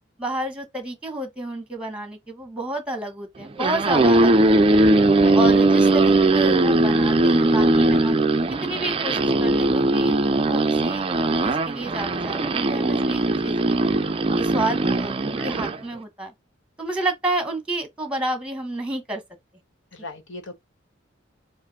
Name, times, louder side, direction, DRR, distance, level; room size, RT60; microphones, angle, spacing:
voice 1, 0.2-4.8 5.3-8.2 8.6-11.0 11.4-13.9 14.4-16.3 16.8-19.2, right 1 dB, 5° right, 1.2 m, -30 dB
sound 1, 3.4-15.8, right 2 dB, 30° right, 0.4 m, -19 dB
voice 2, 15.4-15.7 19.9-20.5, left 2 dB, 65° left, 1.2 m, -38 dB
5.0 x 2.1 x 4.1 m
head